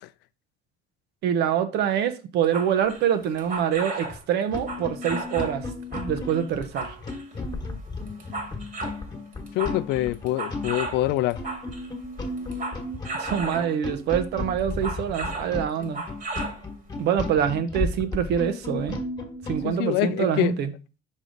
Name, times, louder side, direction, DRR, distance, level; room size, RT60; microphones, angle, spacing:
voice 1, 1.2-5.7 5.9-6.9 13.2-16.0 17.0-19.0 19.5-20.7, right 8 dB, 80° right, 0.8 m, -25 dB
sound 1, 2.4-4.2 4.6-5.6 5.9-7.3 7.9-9.0 9.3-11.9 12.4-13.8 14.6-15.5 15.8-16.6 17.0-17.1, right 3 dB, 55° right, 1.7 m, -35 dB
sound 2, 4.0-4.2 4.5-19.7, left 3 dB, 25° left, 1.3 m, -34 dB
voice 2, 9.6-11.4 19.6-20.5, left 16 dB, 90° left, 0.4 m, -25 dB
5.4 x 4.9 x 3.9 m
cardioid pair, 110°, 17 cm